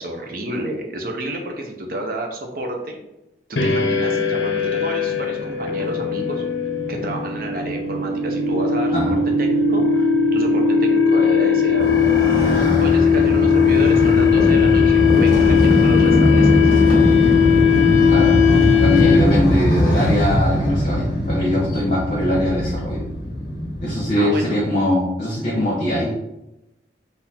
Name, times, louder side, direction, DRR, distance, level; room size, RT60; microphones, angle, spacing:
voice 1, 0.0-3.0 3.5-6.4 6.9-11.9 12.8-16.7 24.2-24.6, right 1 dB, 50° right, 2 dB, 0.8 m, -30 dB
sound 1, 3.6-19.5, left 6 dB, 70° left, 0.6 m, -18 dB
Motorcycle, 11.8-24.0, equal, 25° left, 1.4 m, -20 dB
voice 2, 18.1-18.4 18.8-23.0 23.8-26.1, left 1 dB, 40° left, -6 dB, 1.1 m, -21 dB
4.1 x 2.7 x 4.3 m, 0.91 s
head